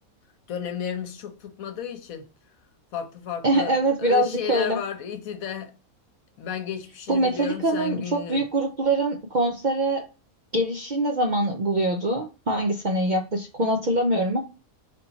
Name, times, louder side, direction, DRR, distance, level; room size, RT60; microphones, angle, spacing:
voice 1, 0.5-2.3 2.9-5.7 6.4-8.4, left 8 dB, 75° left, 1.2 m, -33 dB
voice 2, 3.4-4.8 7.1-10.0 10.5-14.4, right 1 dB, 55° right, 0.5 m, -24 dB
3.5 x 2.8 x 3.9 m
omnidirectional pair, 1.5 m